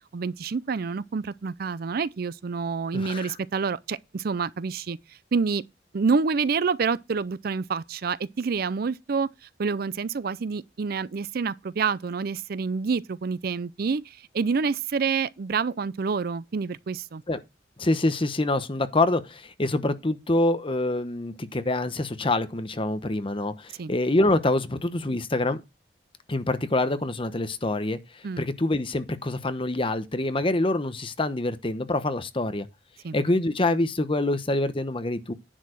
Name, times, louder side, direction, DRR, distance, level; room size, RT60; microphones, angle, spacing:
voice 1, 0.1-5.0 5.3-5.6 5.9-9.3 9.6-17.2 23.8-23.9 28.2-28.4 33.0-33.2, right 5 dB, 60° right, 0.5 m, -27 dB
voice 2, 2.9-3.3 17.3-17.4 17.8-25.6 26.3-28.0 28.4-32.7 33.1-35.3, left 2 dB, 30° left, 0.9 m, -26 dB
10.0 x 4.7 x 6.3 m
head